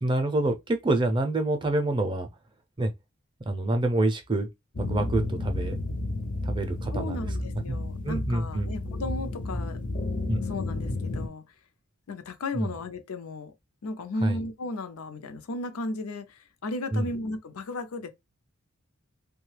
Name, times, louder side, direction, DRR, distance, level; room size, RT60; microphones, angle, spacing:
voice 1, 0.0-2.3 2.8-2.9 3.5-4.5 4.8-5.8 6.4-7.3 7.7-7.8 8.0-8.7 10.3-10.4 12.6-12.7 14.2-14.4 16.9-17.1, right 2 dB, 20° right, 0.4 m, -27 dB
sound 1, 4.7-11.3, left 2 dB, 40° left, 0.5 m, -32 dB
voice 2, 6.9-9.8 10.4-11.4 12.1-13.5 13.8-18.1, left 2 dB, 90° left, 0.5 m, -35 dB
3.1 x 2.2 x 3.2 m
head